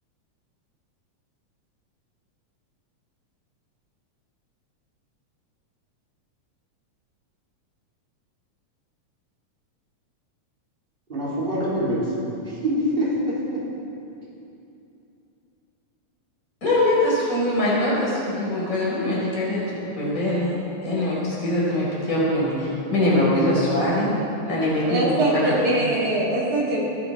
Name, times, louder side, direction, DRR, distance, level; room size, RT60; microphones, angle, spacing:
voice 1, 11.1-12.1 12.4-13.6, equal, 15° right, -8 dB, 3.6 m, -25 dB
voice 2, 16.6-20.5 20.8-24.1 24.4-25.0 25.3-25.5, left 1 dB, 25° left, -7 dB, 4.5 m, -22 dB
voice 3, 24.9-26.8, right 1 dB, 30° right, -4 dB, 2.5 m, -22 dB
23.0 x 9.6 x 4.3 m, 2.8 s
omnidirectional pair, 3.5 m